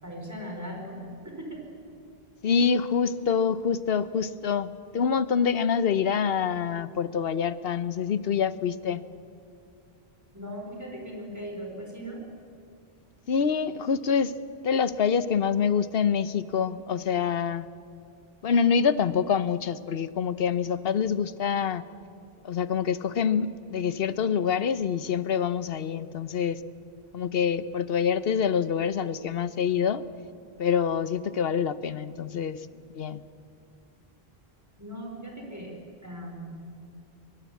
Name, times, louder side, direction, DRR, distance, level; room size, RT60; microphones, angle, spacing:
voice 1, 0.0-1.0 1.2-1.7 10.3-12.2 34.8-35.7 36.0-36.6, equal, 15° right, 0 dB, 4.6 m, -38 dB
voice 2, 2.4-9.0 13.3-14.4 14.6-17.7 18.4-21.8 22.4-26.6 27.1-30.0 30.6-32.7 32.9-33.3, left 7 dB, 70° left, 15 dB, 1.0 m, -26 dB
24.0 x 21.0 x 8.4 m, 2.5 s
omnidirectional pair, 1.0 m